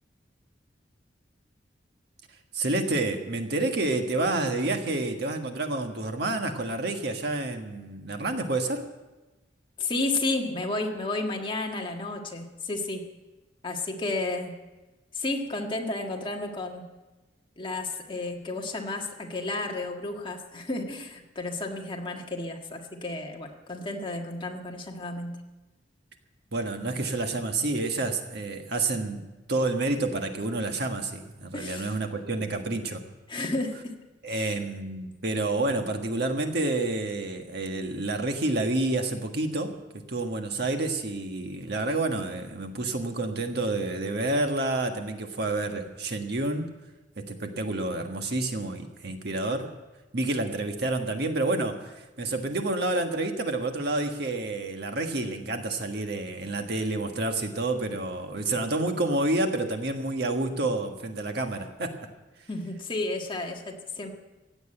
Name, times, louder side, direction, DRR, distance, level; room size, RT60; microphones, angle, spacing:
voice 1, 2.5-8.9 26.5-29.2 29.5-33.0 34.2-39.7 40.1-46.7 47.2-49.7 50.1-61.9, right 2 dB, 60° right, 5 dB, 1.5 m, -29 dB
voice 2, 9.8-13.0 13.6-14.6 15.1-16.9 17.6-25.4 31.5-32.0 32.3-32.5 33.3-33.9 34.3-34.6 62.5-64.1, left 2 dB, 30° left, 1 dB, 1.7 m, -32 dB
16.5 x 8.1 x 8.9 m, 1.1 s
head